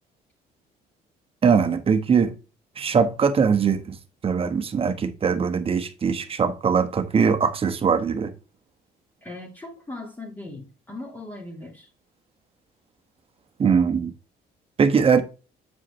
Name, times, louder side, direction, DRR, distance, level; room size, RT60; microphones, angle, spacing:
voice 1, 1.4-2.3 2.8-4.0 4.2-8.3 13.6-14.1 14.8-15.2, right 6 dB, 35° right, 1.1 m, -21 dB
voice 2, 9.2-11.9, left 2 dB, 10° left, 2.0 m, -39 dB
8.3 x 4.8 x 3.1 m
cardioid pair, 110°, 17 cm